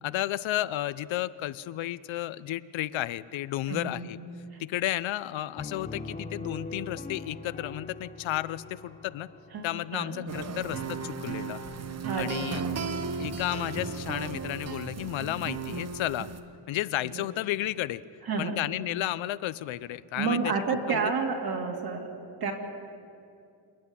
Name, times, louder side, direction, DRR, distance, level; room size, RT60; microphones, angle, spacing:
voice 1, 0.0-4.2 4.6-9.3 9.6-11.6 12.2-12.6 13.2-16.3 16.7-18.0 18.4-21.1, left 14 dB, 80° left, 17 dB, 0.7 m, -32 dB
voice 2, 3.7-4.0 4.5-4.6 9.5-10.5 12.0-12.7 17.1-17.2 18.2-18.6 20.2-22.1 22.4-22.5, right 4 dB, 55° right, 2 dB, 2.7 m, -30 dB
Piano, 5.6-11.1, left 2 dB, 15° left, 0.8 m, -42 dB
sound 1, 10.3-16.4, right 5 dB, 35° right, 1.0 m, -35 dB
27.0 x 10.0 x 9.7 m, 2.5 s
cardioid pair, 155°, 46 cm